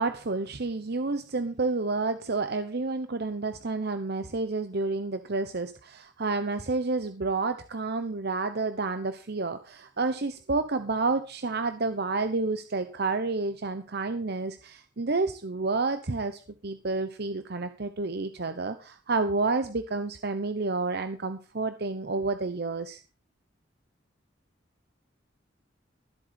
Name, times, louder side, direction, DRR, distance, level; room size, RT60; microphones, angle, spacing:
voice 1, 0.0-23.0, right 3 dB, 60° right, 9 dB, 1.0 m, -30 dB
14.0 x 8.0 x 5.2 m, 0.35 s
head